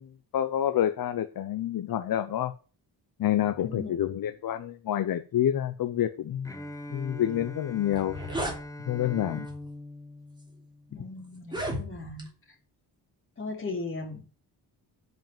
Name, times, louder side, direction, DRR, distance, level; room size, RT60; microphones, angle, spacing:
voice 1, 0.0-2.5 3.2-6.5 6.9-8.1 8.9-9.5, left 11 dB, 50° left, 11 dB, 0.7 m, -28 dB
voice 2, 3.3-3.9 10.9-12.3 13.4-14.2, left 3 dB, 30° left, 1 dB, 3.1 m, -37 dB
Bowed string instrument, 6.4-11.3, left 1 dB, 10° left, 0.9 m, -42 dB
sound 1, 7.9-8.6 9.5-9.7 10.4-10.5 11.4-12.3, equal, 10° right, 3.3 m, -34 dB
10.5 x 5.4 x 7.5 m, 0.38 s
wide cardioid pair, 155°, 43 cm